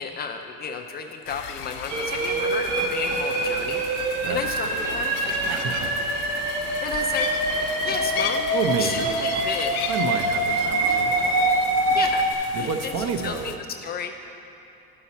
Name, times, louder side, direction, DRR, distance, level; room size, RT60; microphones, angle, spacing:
voice 1, 0.0-3.8 4.3-5.5 6.8-7.3 7.8-8.5 8.8-9.9 11.9-12.2 12.5-12.9 13.2-13.5 13.8-14.3, left 6 dB, 30° left, 4 dB, 0.4 m, -32 dB
sound 1, 1.3-13.6, left 9 dB, 80° left, 0.6 m, -37 dB
sound 2, 1.9-12.3, right 2 dB, 70° right, 1.3 m, -25 dB
voice 2, 4.2-4.9 5.4-5.9 8.5-9.1 9.8-11.1 12.5-13.6, right 6 dB, 55° right, 6 dB, 0.7 m, -29 dB
11.0 x 5.7 x 4.1 m, 2.9 s
cardioid pair, 145°, 33 cm